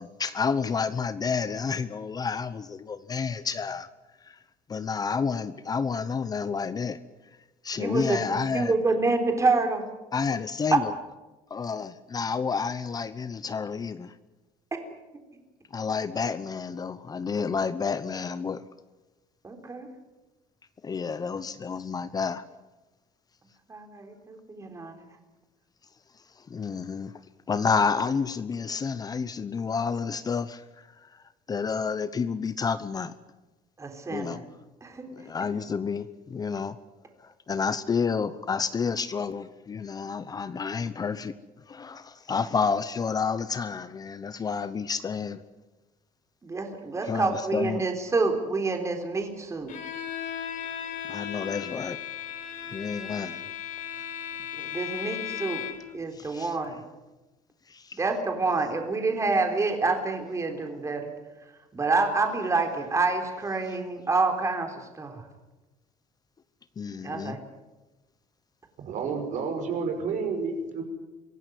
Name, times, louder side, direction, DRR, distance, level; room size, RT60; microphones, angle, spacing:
voice 1, 0.0-3.9 4.2-4.4 4.7-7.0 7.6-8.7 10.1-10.9 11.5-14.1 15.7-18.6 20.8-22.4 26.4-27.1 27.5-33.1 34.1-34.5 35.2-36.8 37.2-41.3 41.7-45.4 47.1-47.8 51.1-52.0 52.7-53.4 56.1-56.6 57.7-58.0 66.8-67.4, left 5 dB, 25° left, 14 dB, 0.9 m, -30 dB
voice 2, 7.8-8.2 8.5-9.9 10.7-10.8 19.4-19.9 23.7-25.0 33.8-34.4 34.8-35.1 46.4-49.7 54.6-55.6 55.9-56.8 57.9-61.1 61.7-65.2 67.0-67.4, right 3 dB, 20° right, 5 dB, 3.7 m, -27 dB
Bowed string instrument, 49.7-56.0, left 9 dB, 65° left, 4.6 m, -36 dB
voice 3, 68.8-70.8, right 5 dB, 60° right, 5 dB, 5.8 m, -30 dB
24.5 x 16.5 x 9.5 m, 1.1 s
cardioid pair, 135°, 14 cm